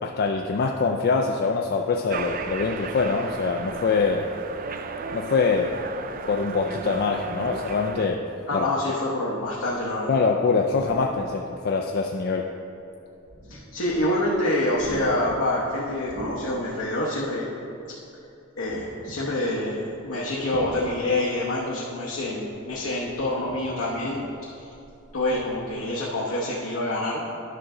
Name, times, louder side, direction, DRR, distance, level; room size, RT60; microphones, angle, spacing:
voice 1, 0.0-4.3 5.1-5.8 6.3-8.3 8.5-8.7 10.1-12.5, left 4 dB, 50° left, 2 dB, 0.4 m, -24 dB
sound 1, 2.1-8.1, right 4 dB, 40° right, 0.4 m, -35 dB
voice 2, 8.5-10.1 13.5-17.5 18.6-24.2 24.6-24.7 25.1-27.2, left 1 dB, 80° left, -5 dB, 1.0 m, -26 dB
sound 2, 9.4-10.0 10.6-11.4 12.0-12.1 13.1-14.3 14.6-16.9 17.2-17.4 18.6-19.4 20.4-21.4 22.4-23.8 24.3-26.0 26.3-26.5, right 1 dB, 85° right, 1.6 m, -42 dB
10.5 x 6.0 x 3.8 m, 2.7 s
head